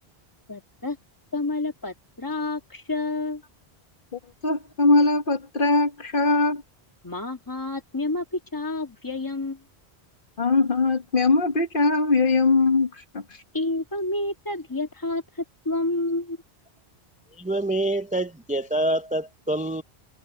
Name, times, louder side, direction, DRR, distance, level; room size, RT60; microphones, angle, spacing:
voice 1, 0.5-1.0 1.3-3.4 7.0-9.6 13.5-15.2 15.6-16.4, left 2 dB, 20° left, 1.6 m, -29 dB
voice 2, 4.4-6.6 10.4-12.9 13.1-13.2, left 3 dB, 50° left, 1.5 m, -21 dB
voice 3, 17.3-19.8, right 1 dB, 10° right, 0.3 m, -26 dB
omnidirectional pair, 1.1 m